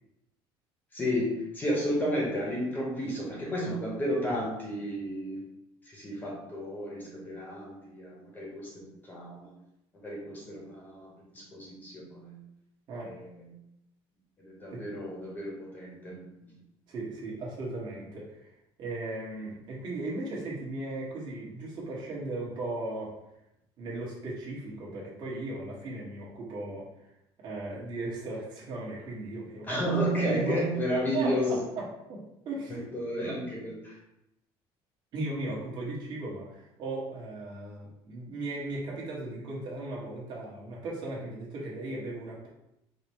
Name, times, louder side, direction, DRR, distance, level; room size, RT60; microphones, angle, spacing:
voice 1, 0.9-5.5 5.9-9.5 10.0-12.4 13.0-13.4 14.4-16.5 29.7-31.6 32.7-34.0, equal, 15° left, -3 dB, 1.0 m, -32 dB
voice 2, 16.9-18.5 18.8-23.2 23.8-26.9 27.4-29.7 30.2-30.6 31.1-32.8 35.1-42.5, right 2 dB, 45° right, -5 dB, 1.4 m, -37 dB
5.1 x 2.1 x 4.5 m, 0.85 s
cardioid pair, 170°, 11 cm